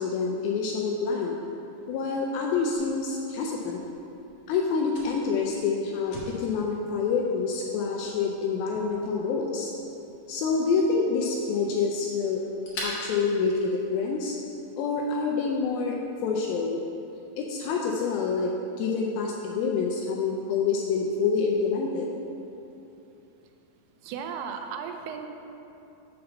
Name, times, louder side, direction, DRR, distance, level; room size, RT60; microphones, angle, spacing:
voice 1, 0.0-1.4 1.9-3.8 4.5-9.7 10.3-12.4 12.8-14.3 14.8-16.8 17.4-18.5 18.8-22.1, left 5 dB, 80° left, 0 dB, 2.3 m, -27 dB
Fire, 2.7-14.3, left 1 dB, 60° left, 2.3 m, -45 dB
voice 2, 24.0-25.3, right 6 dB, 90° right, 5 dB, 2.5 m, -35 dB
6.7 x 4.2 x 6.5 m, 2.8 s
omnidirectional pair, 4.4 m